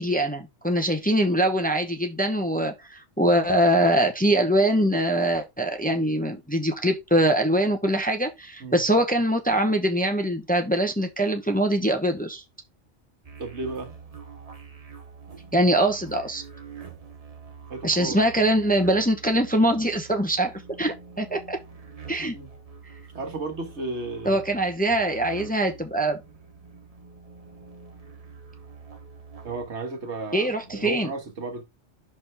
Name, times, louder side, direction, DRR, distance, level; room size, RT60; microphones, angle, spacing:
voice 1, 0.0-12.4 15.5-16.4 17.8-20.5 20.8-21.6 22.1-22.4 24.2-26.2 30.3-31.1, right 1 dB, 10° left, 0.7 m, -23 dB
sound 1, 13.2-29.7, right 6 dB, 35° right, 1.0 m, -45 dB
voice 2, 13.4-13.9 17.7-18.2 22.2-22.5 23.1-24.4 29.4-31.6, right 3 dB, 90° right, 1.9 m, -33 dB
6.2 x 5.8 x 3.4 m
omnidirectional pair, 1.1 m